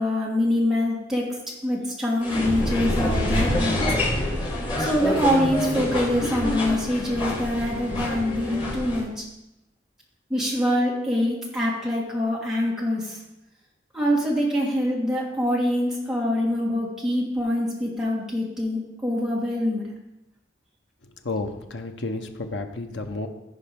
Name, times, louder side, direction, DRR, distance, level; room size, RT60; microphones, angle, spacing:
voice 1, 0.0-3.8 4.8-9.2 10.3-13.2 13.9-19.9, left 1 dB, ahead, -4 dB, 1.8 m, -25 dB
sound 1, 2.2-9.0, left 1 dB, 25° left, 3.7 m, -26 dB
voice 2, 21.2-23.3, left 2 dB, 70° left, 5 dB, 0.8 m, -31 dB
15.0 x 5.1 x 3.6 m, 0.91 s
head